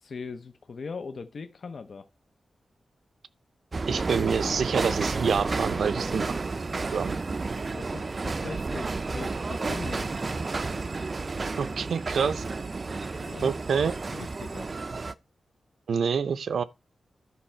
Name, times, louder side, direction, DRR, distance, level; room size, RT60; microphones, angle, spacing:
voice 1, 0.0-2.1 7.7-10.1 13.2-13.5 14.1-14.7, left 4 dB, 50° left, 0.6 m, -40 dB
sound 1, 3.7-15.1, right 3 dB, 30° right, 0.4 m, -31 dB
voice 2, 3.9-6.2 6.9-7.2 11.6-12.4 13.4-13.9 15.9-16.6, right 6 dB, 75° right, 0.6 m, -27 dB
11.0 x 5.4 x 4.4 m
wide cardioid pair, 175°, 0 cm